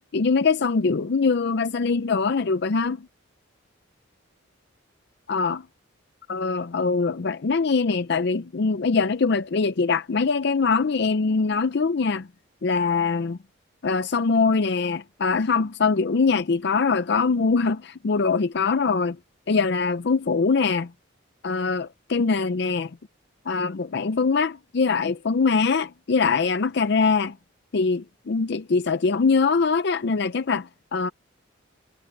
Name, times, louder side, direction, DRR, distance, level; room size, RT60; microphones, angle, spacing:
voice 1, 0.0-3.1 5.3-5.7 6.3-12.3 12.6-13.4 13.8-19.2 19.5-20.9 21.4-23.0 23.5-27.4 27.7-31.1, left 4 dB, 55° left, 0.5 m, -23 dB
head